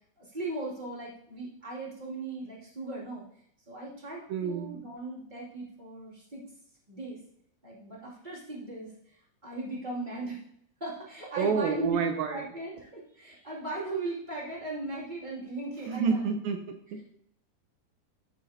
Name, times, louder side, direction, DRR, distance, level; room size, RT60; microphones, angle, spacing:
voice 1, 0.2-3.2 3.7-6.4 6.9-7.2 7.6-10.4 10.8-12.0 12.3-16.3, right 2 dB, 15° right, -7 dB, 1.9 m, -38 dB
voice 2, 4.3-4.7 11.4-12.5 15.9-17.1, right 6 dB, 80° right, 6 dB, 2.3 m, -29 dB
13.5 x 6.2 x 2.8 m, 0.71 s
omnidirectional pair, 4.6 m